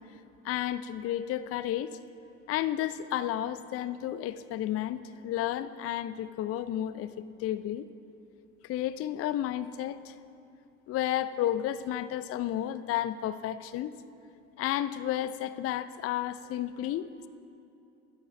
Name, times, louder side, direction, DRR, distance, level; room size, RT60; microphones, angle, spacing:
voice 1, 0.4-2.0 2.5-7.9 8.6-10.1 10.9-13.9 14.6-17.1, left 12 dB, 40° left, 14 dB, 0.4 m, -32 dB
11.0 x 5.6 x 5.8 m, 2.8 s
hypercardioid pair, 60°, 35 cm